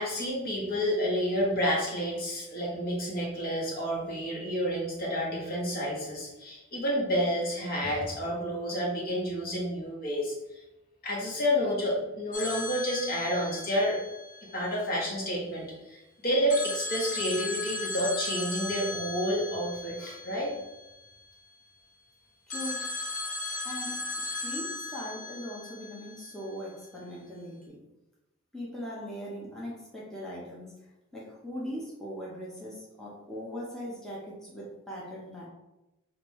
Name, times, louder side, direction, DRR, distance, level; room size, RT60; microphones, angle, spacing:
voice 1, 0.0-10.3 11.0-14.0 14.4-20.5, equal, 50° left, -3 dB, 1.2 m, -30 dB
sound 1, 12.3-15.2 16.5-21.4 22.5-26.7, left 2 dB, 85° left, 1.0 m, -37 dB
voice 2, 22.5-22.8 23.6-27.8 28.5-30.7 31.1-35.5, equal, 5° left, -6 dB, 0.8 m, -40 dB
5.2 x 2.6 x 3.1 m, 0.98 s
head